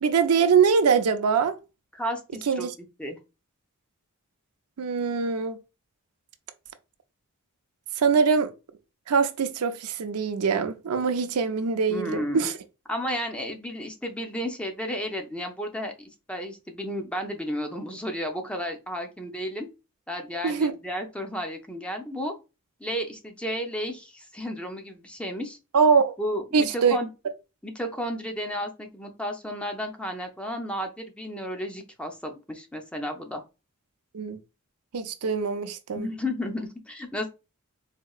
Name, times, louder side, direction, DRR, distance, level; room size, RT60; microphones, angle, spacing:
voice 1, 0.0-1.5 2.5-2.7 4.8-5.6 8.0-8.5 9.1-12.5 20.4-20.7 25.7-26.1 26.5-27.0 34.1-34.4 34.9-36.1, right 5 dB, 85° right, 0.5 m, -23 dB
voice 2, 1.9-2.7 3.0-3.2 11.9-12.5 12.9-19.7 20.1-22.3 22.8-25.6 26.2-27.1 27.6-33.4 36.0-37.3, equal, 5° left, 0.5 m, -33 dB
4.2 x 2.8 x 2.3 m
head